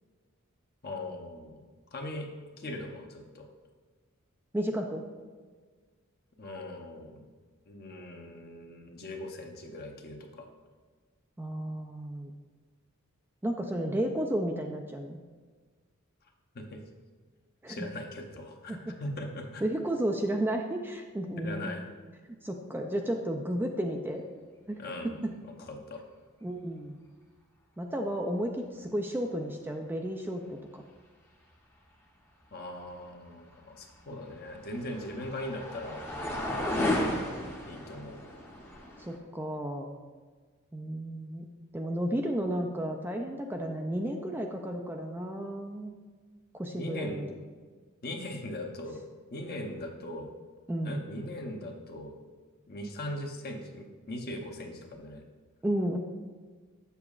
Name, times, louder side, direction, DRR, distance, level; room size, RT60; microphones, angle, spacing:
voice 1, 0.8-1.5 1.9-2.3 2.6-3.5 6.4-7.2 7.7-10.5 16.5-16.8 17.7-19.7 21.4-21.8 24.8-25.2 25.6-26.0 32.5-36.0 37.7-38.2 46.7-47.2 48.0-49.0 49.3-50.3 50.8-52.1 52.7-55.3, left 1 dB, 45° left, 2 dB, 0.8 m, -40 dB
voice 2, 4.5-5.0 11.4-12.3 13.4-15.2 17.6-17.8 18.7-18.9 19.6-21.8 22.3-24.2 24.7-25.3 26.4-27.0 27.8-30.8 39.0-39.9 40.7-41.5 41.7-45.9 46.5-47.3 50.7-51.0 55.6-56.0, right 1 dB, 10° right, 2 dB, 0.3 m, -33 dB
sound 1, 33.9-39.2, left 1 dB, 10° left, 0.7 m, -34 dB
7.2 x 6.8 x 2.4 m, 1.5 s
head